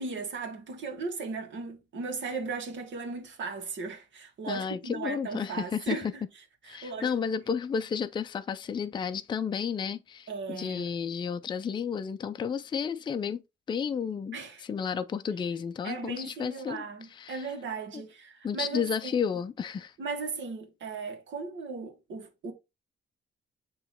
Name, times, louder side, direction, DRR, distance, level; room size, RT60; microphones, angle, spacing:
voice 1, 0.0-6.1 6.7-7.1 10.3-10.9 14.3-14.7 15.8-19.1 20.0-22.5, right 4 dB, 70° right, 1.8 m, -37 dB
voice 2, 4.5-6.1 6.6-13.4 13.7-17.5 17.9-18.0 18.4-19.9, left 7 dB, 25° left, 0.4 m, -32 dB
7.8 x 3.1 x 4.3 m
wide cardioid pair, 175°, 20 cm